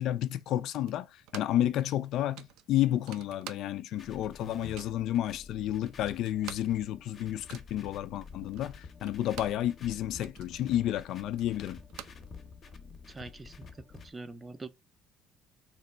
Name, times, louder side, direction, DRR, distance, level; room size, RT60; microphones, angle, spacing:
voice 1, 0.0-11.8, left 12 dB, 60° left, 0.3 m, -31 dB
sound 1, 0.9-1.7 2.0-2.1 2.4-4.0 4.3-5.1 5.6-5.7 5.9-9.7 10.0-12.8, right 11 dB, 80° right, 0.4 m, -49 dB
sound 2, 4.0-14.1, left 4 dB, 35° left, 0.7 m, -49 dB
voice 2, 13.1-14.7, right 3 dB, 15° right, 0.4 m, -44 dB
3.2 x 2.9 x 4.3 m
cardioid pair, 155°, 0 cm